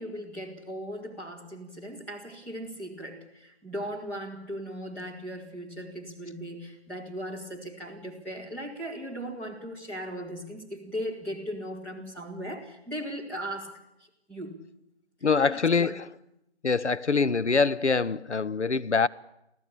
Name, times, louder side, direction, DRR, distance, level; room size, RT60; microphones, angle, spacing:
voice 1, 0.0-13.7 14.3-14.6 15.5-15.9, equal, 5° left, 2.1 m, -38 dB
voice 2, 15.2-16.1 16.6-19.1, left 4 dB, 85° left, 0.8 m, -24 dB
24.0 x 16.0 x 8.5 m
figure-of-eight pair, 150°, 34 cm